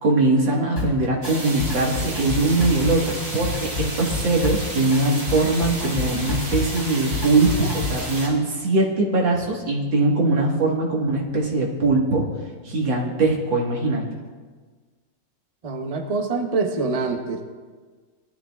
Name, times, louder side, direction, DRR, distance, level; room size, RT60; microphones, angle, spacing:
voice 1, 0.0-12.2 12.6-14.0, right 2 dB, 75° right, -2 dB, 2.4 m, -21 dB
Drum kit, 0.8-1.3 1.6-8.1, left 2 dB, 50° left, 3.6 m, -29 dB
sound 1, 1.2-8.3, right 1 dB, 60° right, 3.6 m, -32 dB
voice 2, 15.6-17.4, right 4 dB, 40° right, 4 dB, 0.5 m, -25 dB
19.0 x 12.5 x 2.4 m, 1.5 s
omnidirectional pair, 2.1 m